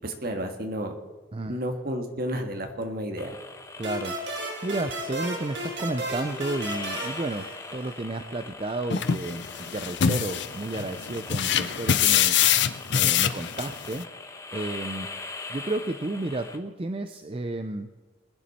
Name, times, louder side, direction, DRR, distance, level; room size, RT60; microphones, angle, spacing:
voice 1, 0.0-0.9 1.5-3.4, equal, 50° right, 5 dB, 1.7 m, -31 dB
sound 1, 3.2-16.6, left 3 dB, 15° left, 0.9 m, -41 dB
voice 2, 3.8-9.4 9.7-12.4 12.9-14.1 14.5-15.1 15.5-17.9, right 2 dB, 30° right, 8 dB, 0.5 m, -32 dB
sound 2, 3.8-8.2, right 1 dB, 65° right, 2.8 m, -34 dB
sound 3, 8.9-14.0, left 9 dB, 60° left, 0.6 m, -24 dB
21.0 x 10.5 x 4.2 m, 1.3 s
head